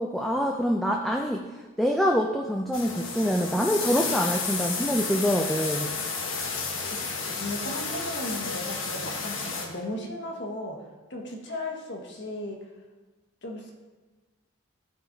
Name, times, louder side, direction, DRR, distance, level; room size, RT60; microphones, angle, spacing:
voice 1, 0.0-1.4 1.8-5.9, equal, ahead, 1 dB, 0.4 m, -25 dB
sound 1, 2.7-9.7, left 4 dB, 75° left, 1.2 m, -32 dB
voice 2, 6.8-10.8 11.1-12.6 13.4-13.7, left 1 dB, 55° left, 1 dB, 1.3 m, -36 dB
13.5 x 4.5 x 4.0 m, 1.2 s
head